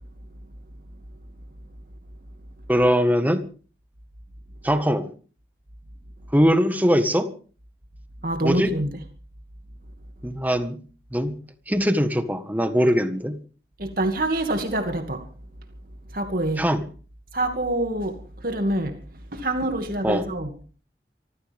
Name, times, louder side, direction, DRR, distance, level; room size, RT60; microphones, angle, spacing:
voice 1, 2.7-3.4 4.6-5.1 6.3-7.3 8.4-8.7 10.2-10.8 11.1-11.3 11.7-13.4 16.6-16.8 20.0-20.3, equal, 10° right, 1.6 m, -21 dB
voice 2, 8.2-8.9 13.8-15.3 16.1-16.6 17.3-19.0 19.3-20.5, right 1 dB, 55° right, 2.4 m, -26 dB
25.5 x 15.0 x 3.6 m
head